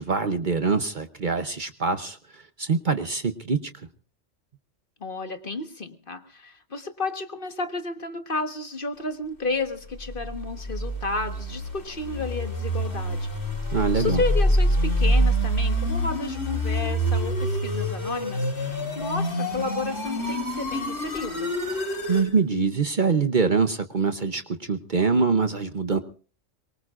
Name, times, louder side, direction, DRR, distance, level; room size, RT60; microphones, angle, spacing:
voice 1, 0.0-2.2 2.6-3.7 13.7-14.2 22.1-26.0, right 4 dB, 45° right, 8 dB, 1.0 m, -24 dB
voice 2, 5.0-13.3 13.7-21.5, left 3 dB, 45° left, 6 dB, 1.6 m, -32 dB
sound 1, 10.1-22.3, equal, 80° left, 5.2 m, -26 dB
23.5 x 23.5 x 2.5 m, 0.40 s
omnidirectional pair, 1.3 m